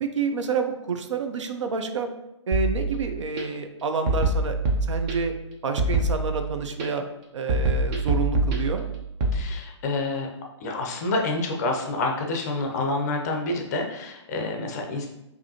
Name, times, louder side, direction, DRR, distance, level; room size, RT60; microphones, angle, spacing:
voice 1, 0.0-2.1 2.5-4.6 4.9-5.3 5.6-7.0 7.3-8.9, right 5 dB, 75° right, 7 dB, 0.6 m, -28 dB
sound 1, 2.5-3.4 4.1-5.4 5.8-6.9 7.5-9.4, right 2 dB, 20° right, 0.4 m, -25 dB
voice 2, 9.3-10.3 10.6-15.1, left 2 dB, 35° left, 2 dB, 0.6 m, -28 dB
4.9 x 2.7 x 2.8 m, 0.90 s
hypercardioid pair, 155°, 15 cm